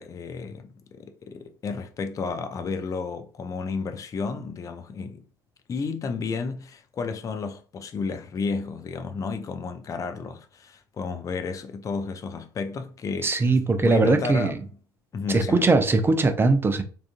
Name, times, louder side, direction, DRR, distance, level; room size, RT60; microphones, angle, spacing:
voice 1, 0.0-5.2 5.7-13.5 13.8-14.6 15.1-15.7, left 4 dB, 30° left, 0.5 m, -32 dB
voice 2, 13.2-14.5 15.3-16.8, right 3 dB, 20° right, 0.6 m, -20 dB
3.6 x 2.5 x 2.5 m
hypercardioid pair, 70°, 11 cm